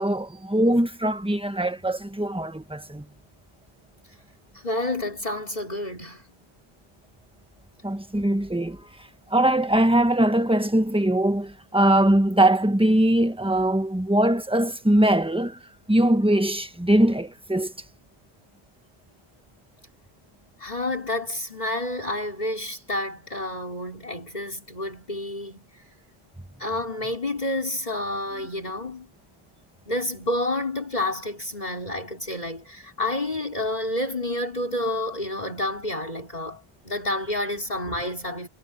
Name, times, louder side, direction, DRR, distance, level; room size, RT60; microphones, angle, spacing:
voice 1, 0.0-3.1 7.8-8.9 9.3-15.6 15.9-17.7, right 1 dB, 5° right, 1.3 m, -21 dB
voice 2, 4.6-6.2 20.6-25.6 26.6-29.1 29.9-38.5, left 1 dB, 40° left, 4.2 m, -29 dB
omnidirectional pair, 1.1 m